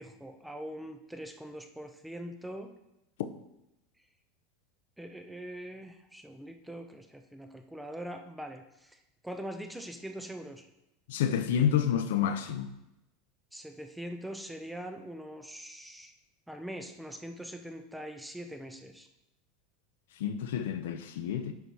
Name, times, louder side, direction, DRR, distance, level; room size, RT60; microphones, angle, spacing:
voice 1, 0.0-2.7 5.0-10.7 13.5-16.1 16.5-19.1, right 1 dB, 5° right, 0.5 m, -42 dB
voice 2, 11.1-12.7 20.2-21.5, left 9 dB, 85° left, 0.8 m, -29 dB
8.1 x 4.7 x 5.5 m
supercardioid pair, 165°, 0 cm